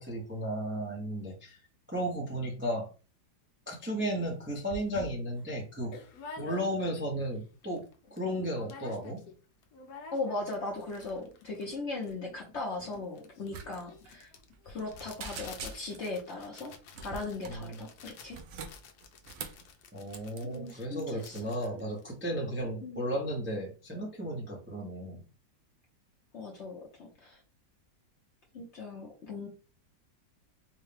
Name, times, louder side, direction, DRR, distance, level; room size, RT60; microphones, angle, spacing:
voice 1, 0.0-1.6 1.9-2.9 3.7-5.9 6.4-7.8 8.1-9.2 17.5-17.8 19.9-25.2, equal, 15° right, -1 dB, 0.4 m, -34 dB
sound 1, 4.2-4.3 4.7-7.1 7.5-7.6 7.8-8.2 8.5-9.4 9.6-22.7, left 3 dB, 70° left, 1.1 m, -49 dB
voice 2, 10.1-14.3 14.6-16.7 17.0-18.7 20.4-21.4 22.8-23.0 26.3-27.4 28.5-29.5, left 3 dB, 55° left, -1 dB, 0.8 m, -38 dB
sound 2, 13.5-13.7 13.9-14.1 14.5-14.9 15.2-16.1 16.9-17.7 18.2-19.7 20.1-20.4, right 5 dB, 70° right, 0.8 m, -43 dB
4.6 x 2.2 x 3.3 m, 0.35 s
omnidirectional pair, 2.0 m